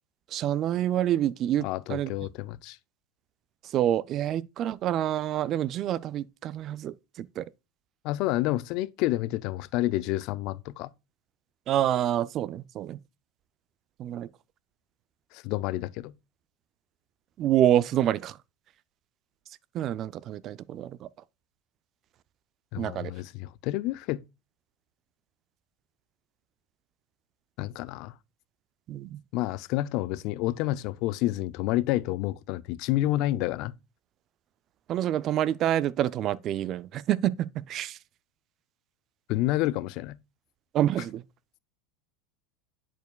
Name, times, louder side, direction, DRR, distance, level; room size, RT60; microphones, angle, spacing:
voice 1, 0.3-2.1 3.7-7.4 11.7-13.0 14.0-14.3 17.4-18.4 19.7-20.9 22.8-23.1 28.9-29.2 34.9-38.0 40.7-41.2, right 11 dB, 40° right, 0.3 m, -27 dB
voice 2, 1.6-2.8 8.0-10.9 15.3-16.1 22.7-24.2 27.6-28.1 29.3-33.7 39.3-40.2, left 16 dB, 55° left, 0.4 m, -29 dB
10.5 x 4.5 x 2.2 m
supercardioid pair, 130°, 0 cm